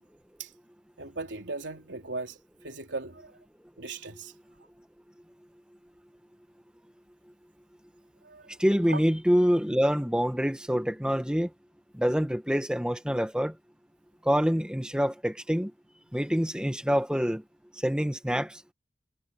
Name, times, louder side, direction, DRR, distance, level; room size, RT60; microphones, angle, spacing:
voice 1, 1.0-2.4 2.6-3.4 3.8-4.3 8.2-8.5 8.9-9.0, right 3 dB, 80° right, 3.6 m, -37 dB
voice 2, 8.6-11.5 11.9-13.5 14.2-15.7 16.1-17.4 17.8-18.6, equal, 5° right, 1.6 m, -26 dB
head